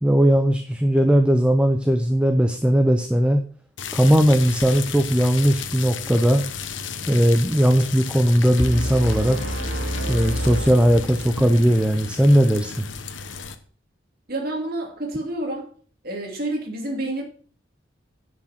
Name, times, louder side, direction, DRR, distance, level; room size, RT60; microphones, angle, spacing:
voice 1, 0.0-3.4 3.9-6.4 7.1-9.4 10.1-12.9, equal, 5° right, 0.7 m, -18 dB
sound 1, 3.8-13.6, left 6 dB, 90° left, 1.1 m, -34 dB
sound 2, 8.6-11.6, equal, 85° right, 3.3 m, -28 dB
voice 2, 14.3-15.7 16.0-17.2, right 1 dB, 50° right, 2.8 m, -28 dB
10.5 x 6.3 x 5.9 m
head